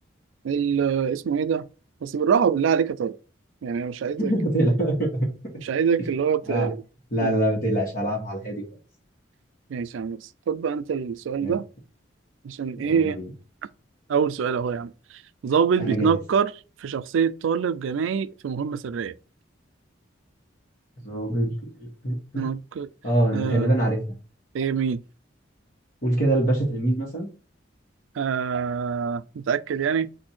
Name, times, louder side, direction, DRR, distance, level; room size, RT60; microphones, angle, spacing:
voice 1, 0.4-1.7 2.0-3.2 3.6-4.3 5.6-6.8 7.2-7.3 9.7-11.7 12.4-13.2 14.1-14.9 15.4-16.5 16.8-19.1 22.4-22.9 23.3-23.7 24.5-25.0 28.2-30.1, right 6 dB, 80° right, 0.4 m, -25 dB
voice 2, 4.2-5.3 6.5-6.7 7.1-8.6 11.4-11.6 12.8-13.3 15.8-16.1 21.0-21.5 21.8-22.4 23.0-24.2 26.0-27.3, right 1 dB, 45° left, 1.4 m, -24 dB
4.3 x 2.7 x 4.3 m
head